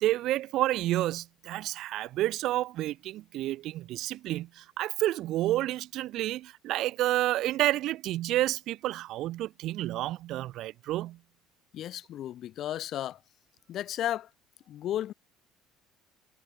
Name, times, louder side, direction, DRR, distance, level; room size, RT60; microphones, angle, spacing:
voice 1, 0.0-11.2, right 15 dB, 60° right, 1.1 m, -30 dB
voice 2, 11.7-13.2 13.7-14.3 14.7-15.1, left 12 dB, 55° left, 0.8 m, -33 dB
hypercardioid pair, 60°, 0 cm